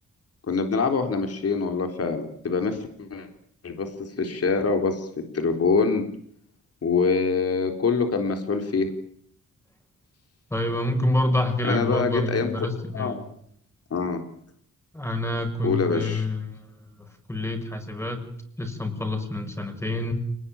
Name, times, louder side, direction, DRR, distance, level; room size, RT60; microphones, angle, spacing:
voice 1, 0.5-3.3 3.6-5.1 5.3-6.0 6.8-8.9 11.6-12.5 12.9-13.2 13.9-14.2 15.6-16.3, left 4 dB, 50° left, 5 dB, 4.0 m, -25 dB
voice 2, 10.5-13.2 14.9-18.3 18.6-20.1, left 1 dB, 10° left, 6 dB, 6.2 m, -27 dB
29.0 x 20.5 x 8.9 m, 0.65 s
wide cardioid pair, 145°, 31 cm